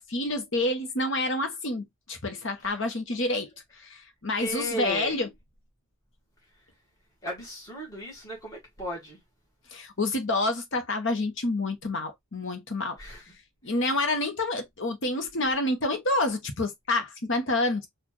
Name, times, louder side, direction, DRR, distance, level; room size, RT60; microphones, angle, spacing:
voice 1, 0.0-5.3 9.7-13.0 13.6-17.9, left 2 dB, 55° left, 1.1 m, -28 dB
voice 2, 4.4-5.2 7.2-9.2 13.0-13.2 13.6-13.7, equal, 15° left, 1.6 m, -35 dB
4.1 x 2.5 x 3.0 m
head